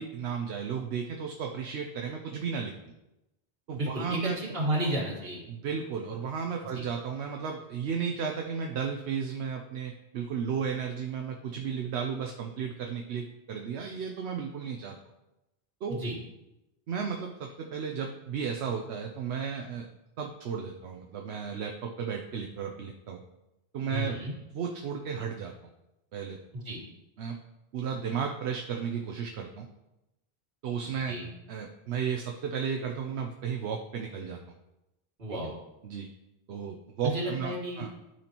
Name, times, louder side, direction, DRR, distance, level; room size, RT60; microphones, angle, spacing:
voice 1, 0.0-2.7 3.7-4.4 5.5-14.9 15.8-16.0 16.9-19.9 20.2-23.2 23.7-24.2 24.5-25.5 26.1-26.4 27.2-27.4 27.7-29.7 30.6-31.1 31.5-34.4 35.8-36.1 36.5-37.9, right 6 dB, 85° right, 2 dB, 0.9 m, -34 dB
voice 2, 3.8-5.4 6.7-6.8 15.9-16.2 23.9-24.3 26.5-26.8 31.1-31.3 35.2-35.5 37.0-37.9, right 1 dB, 65° right, -3 dB, 1.9 m, -32 dB
12.0 x 4.3 x 2.9 m, 0.93 s
omnidirectional pair, 1.1 m